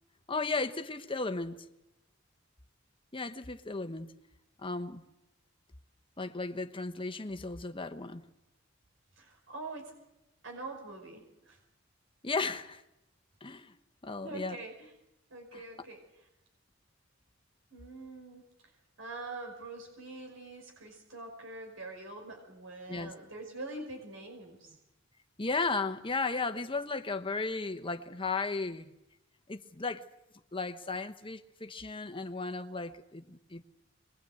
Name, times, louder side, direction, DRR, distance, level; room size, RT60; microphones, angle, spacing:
voice 1, 0.3-1.6 3.1-4.1 4.6-5.0 6.2-8.2 12.2-12.8 13.4-13.7 14.0-14.6 15.5-15.6 22.9-23.1 25.4-28.9 29.5-30.0 30.5-33.6, left 3 dB, 25° left, 1.2 m, -35 dB
voice 2, 9.2-9.9 10.4-11.6 14.2-14.9 15.3-16.0 17.7-18.4 19.0-24.8, right 2 dB, 85° right, 5.4 m, -44 dB
24.5 x 22.0 x 8.0 m
head